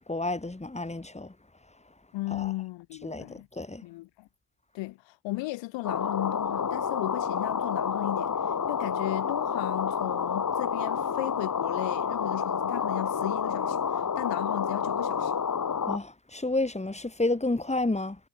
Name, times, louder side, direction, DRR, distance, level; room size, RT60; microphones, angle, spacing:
voice 1, 0.0-1.3 2.3-2.5 3.0-3.8 15.9-18.2, left 2 dB, 15° left, 4.5 m, -30 dB
voice 2, 2.1-3.5 3.8-4.3 4.7-15.3, left 19 dB, 65° left, 1.2 m, -35 dB
sound 1, 5.8-16.0, left 6 dB, 40° left, 3.5 m, -29 dB
hypercardioid pair, 50°, 48 cm